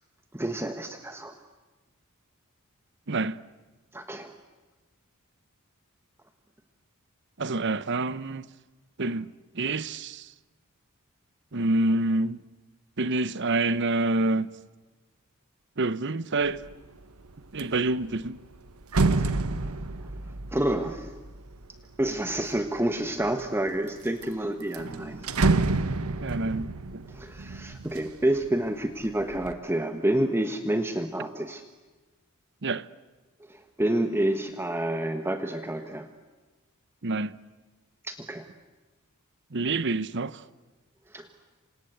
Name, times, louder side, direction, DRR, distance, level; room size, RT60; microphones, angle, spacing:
voice 1, 0.3-1.4 3.9-4.3 19.2-19.4 20.5-21.1 22.0-25.4 27.1-31.6 33.5-36.1 38.0-38.5 41.1-41.3, right 1 dB, 10° right, 1.2 m, -29 dB
voice 2, 3.1-3.4 7.4-8.5 9.0-10.3 11.5-12.4 13.0-14.5 15.8-16.6 17.5-18.4 26.2-27.0 32.6-32.9 37.0-37.4 39.5-40.4, right 2 dB, 55° right, 0.9 m, -27 dB
sound 1, 16.5-16.9 17.3-22.6 23.2-23.9 24.2-24.3 24.6-28.5 28.9-29.5, right 3 dB, 80° right, 1.1 m, -29 dB
27.5 x 26.5 x 8.1 m
head